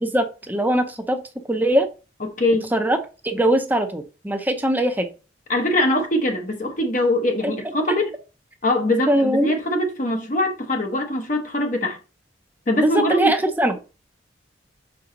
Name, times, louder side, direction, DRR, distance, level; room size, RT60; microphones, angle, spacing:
voice 1, 0.0-1.2 1.5-1.9 2.7-3.0 3.2-5.1 7.4-7.5 9.1-9.5 12.8-13.8, right 1 dB, 10° right, 0.8 m, -21 dB
voice 2, 2.4-2.7 5.5-8.1 8.6-12.0 12.7-13.3, left 1 dB, 45° left, 1.0 m, -22 dB
6.1 x 4.7 x 3.8 m
head